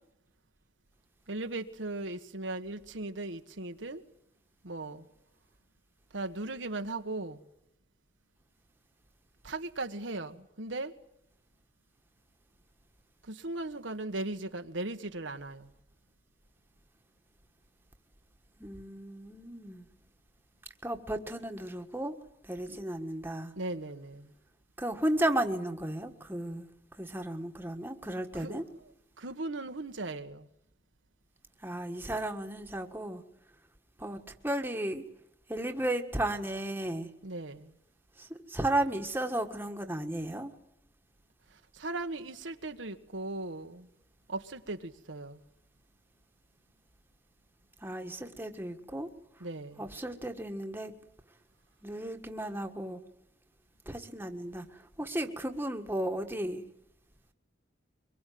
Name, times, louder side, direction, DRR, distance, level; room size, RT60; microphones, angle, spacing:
voice 1, 1.3-4.0 4.6-5.1 6.1-7.4 9.4-10.9 13.2-15.7 22.7-22.8 23.6-24.3 28.3-28.6 29.2-30.5 37.2-37.7 41.5-43.9 44.3-45.4 49.4-49.9, right 2 dB, 85° right, 1.5 m, -38 dB
voice 2, 18.6-19.9 20.8-22.1 22.4-23.5 24.8-26.7 27.0-28.6 31.6-33.2 34.0-34.2 34.4-35.0 35.5-37.1 38.2-40.5 47.8-49.1 49.8-50.9 51.8-53.0 53.8-56.6, right 1 dB, 10° right, 1.6 m, -34 dB
24.0 x 22.0 x 9.4 m
head